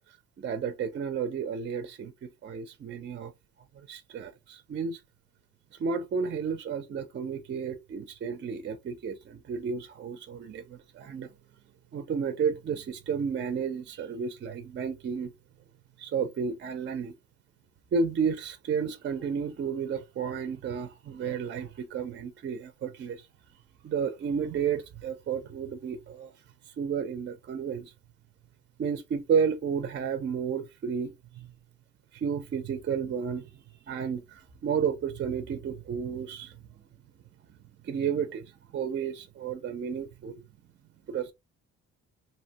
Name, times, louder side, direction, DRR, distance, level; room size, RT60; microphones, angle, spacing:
voice 1, 0.4-3.3 3.7-5.0 5.8-11.3 11.9-15.3 16.0-17.1 17.9-23.3 23.8-26.3 26.7-27.9 28.8-31.5 32.1-36.6 37.8-40.4 41.1-41.3, right 6 dB, 40° right, 0.4 m, -32 dB
2.6 x 2.1 x 2.7 m
cardioid pair, 90°, 30 cm